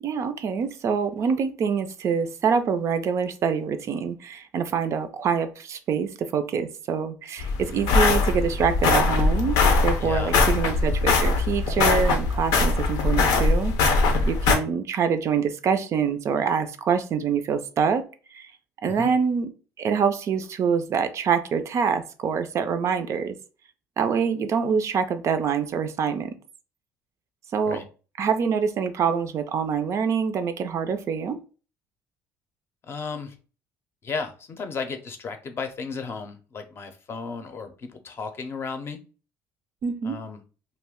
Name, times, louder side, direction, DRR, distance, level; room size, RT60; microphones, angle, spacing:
voice 1, 0.0-18.0 18.3-18.5 18.8-19.5 19.8-23.4 24.0-26.4 27.5-27.8 28.2-31.4 39.8-40.2, right 6 dB, 50° right, 9 dB, 0.3 m, -25 dB
sound 1, 7.4-14.6, left 3 dB, 85° left, 0.6 m, -21 dB
voice 2, 10.0-10.4 18.9-19.1 27.6-27.8 32.9-33.3 34.0-39.0 40.0-40.4, left 5 dB, 40° left, 6 dB, 0.6 m, -34 dB
2.4 x 2.1 x 3.5 m, 0.36 s
cardioid pair, 100°, 6 cm